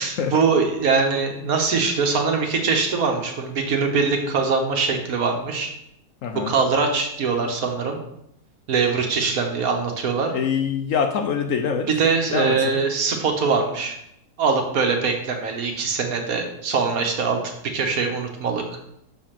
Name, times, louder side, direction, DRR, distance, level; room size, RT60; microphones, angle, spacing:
voice 1, 0.0-5.7 6.3-8.0 8.7-10.3 11.9-14.0 14.4-17.4 17.6-18.8, right 4 dB, 65° right, 3 dB, 1.4 m, -22 dB
voice 2, 6.2-6.5 10.3-11.9 12.3-12.8, left 6 dB, 65° left, 4 dB, 0.8 m, -24 dB
6.6 x 3.3 x 5.8 m, 0.75 s
omnidirectional pair, 1.7 m